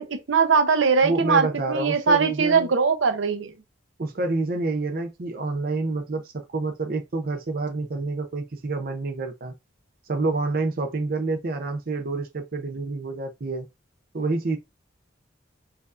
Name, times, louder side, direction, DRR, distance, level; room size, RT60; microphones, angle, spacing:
voice 1, 0.0-3.5, right 5 dB, 85° right, 0.7 m, -21 dB
voice 2, 1.0-2.7 4.0-9.5 10.1-13.7 14.1-14.6, right 3 dB, 50° right, 0.6 m, -28 dB
4.4 x 2.7 x 2.4 m
head